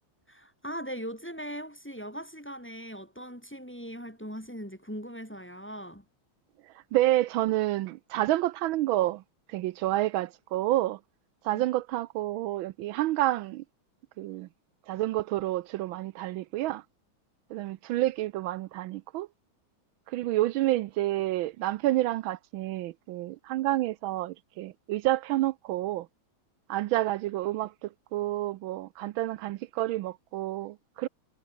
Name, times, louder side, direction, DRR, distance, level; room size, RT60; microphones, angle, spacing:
voice 1, 0.3-6.1 11.5-11.6, equal, 5° left, 2.2 m, -40 dB
voice 2, 6.9-9.2 9.5-11.0 11.4-13.6 14.2-14.5 14.9-16.8 17.5-19.3 20.1-26.1 26.7-31.1, right 15 dB, 80° right, 1.4 m, -29 dB
omnidirectional pair, 2.2 m